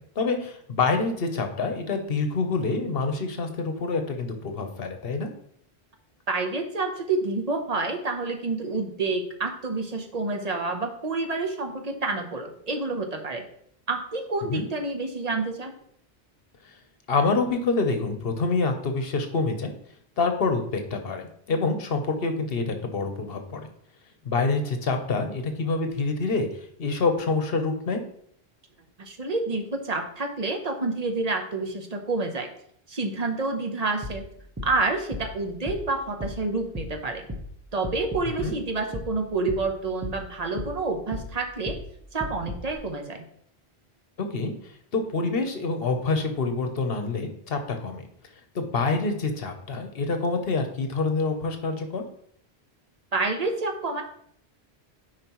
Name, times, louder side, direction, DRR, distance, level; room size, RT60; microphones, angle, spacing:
voice 1, 0.2-5.3 14.5-14.6 17.1-19.7 20.2-23.7 24.2-26.5 26.8-28.0 38.4-38.5 44.3-44.5 44.9-48.0 48.5-52.0, left 3 dB, 65° left, 6 dB, 1.1 m, -26 dB
voice 2, 6.3-13.4 13.9-15.7 29.0-32.5 32.9-34.2 34.6-37.3 37.7-41.8 42.1-43.2 53.1-54.0, right 3 dB, 40° right, 4 dB, 0.9 m, -28 dB
sound 1, 34.0-42.8, left 1 dB, 15° right, 1.0 m, -38 dB
9.1 x 4.9 x 3.0 m, 0.67 s
omnidirectional pair, 1.1 m